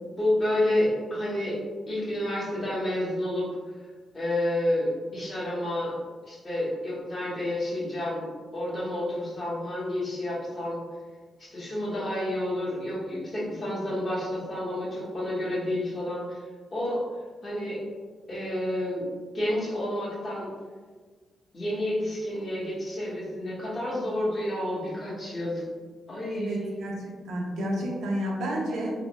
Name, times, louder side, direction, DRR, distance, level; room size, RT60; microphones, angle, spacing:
voice 1, 0.2-1.6 1.9-3.5 4.1-5.9 6.3-8.2 8.5-10.8 11.4-16.4 16.7-17.0 17.4-17.8 18.3-19.1 19.3-20.5 21.5-25.6 26.1-26.9, left 1 dB, 35° left, -7 dB, 1.2 m, -29 dB
voice 2, 26.3-28.9, right 1 dB, 85° right, -2 dB, 0.6 m, -31 dB
3.2 x 2.0 x 2.9 m, 1.4 s
cardioid pair, 110°, 0 cm